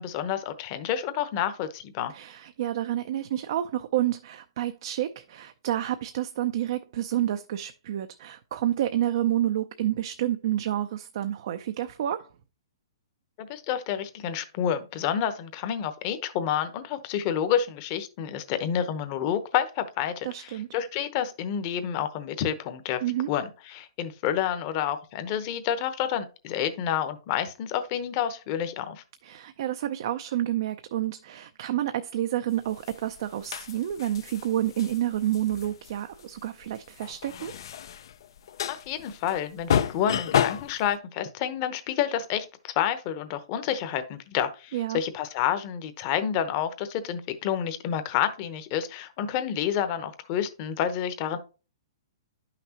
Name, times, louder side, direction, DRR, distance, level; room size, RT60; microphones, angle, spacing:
voice 1, 0.0-2.1 13.4-23.0 23.3-29.0 38.7-51.4, left 9 dB, 35° left, 0.9 m, -29 dB
voice 2, 2.1-12.3 20.2-20.7 23.0-23.3 29.2-37.5 44.7-45.0, right 12 dB, 50° right, 0.5 m, -29 dB
sound 1, 32.7-40.9, left 9 dB, 65° left, 0.5 m, -31 dB
10.5 x 5.9 x 2.9 m
hypercardioid pair, 155°, 3 cm